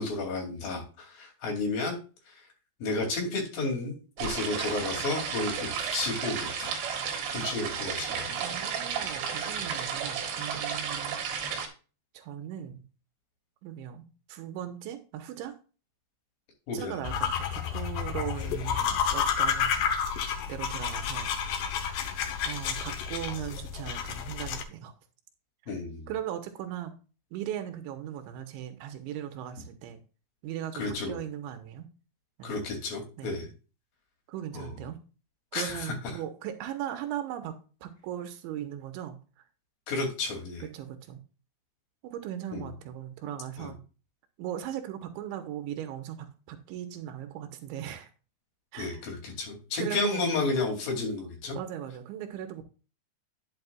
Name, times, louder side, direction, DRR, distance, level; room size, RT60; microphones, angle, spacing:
voice 1, 0.0-2.0 2.3-2.4 2.8-6.7 7.3-8.3 16.7-17.0 25.7-26.1 30.7-31.2 32.4-33.5 34.5-34.7 35.5-35.9 39.9-40.6 42.5-42.6 43.6-43.7 48.8-51.6, left 3 dB, 55° left, 0 dB, 4.2 m, -32 dB
sound 1, 4.2-11.7, right 7 dB, 75° right, 3.5 m, -33 dB
voice 2, 8.4-11.2 12.1-12.8 13.6-15.5 16.7-20.0 20.3-21.3 22.5-24.9 25.6-25.8 26.1-27.0 27.3-30.0 30.4-31.9 32.4-32.7 33.2-33.5 34.3-35.0 35.5-39.4 40.6-41.2 42.0-43.8 44.4-48.1 48.7-49.0 49.8-50.2 51.5-52.6, right 10 dB, 90° right, 7 dB, 3.3 m, -38 dB
sound 2, 17.0-24.6, left 7 dB, 80° left, 1.9 m, -30 dB
11.0 x 8.1 x 2.4 m, 0.34 s
omnidirectional pair, 5.3 m